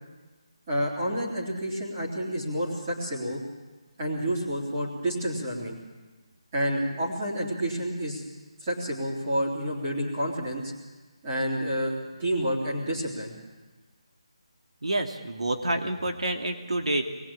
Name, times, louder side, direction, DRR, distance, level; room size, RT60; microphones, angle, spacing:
voice 1, 0.7-3.4 4.0-5.8 6.5-8.2 8.6-10.7 11.2-13.3, equal, 15° right, -4 dB, 3.4 m, -29 dB
voice 2, 14.8-17.0, right 1 dB, 85° right, 4 dB, 2.8 m, -28 dB
26.5 x 21.0 x 8.8 m, 1.2 s
hypercardioid pair, 180°, 3 cm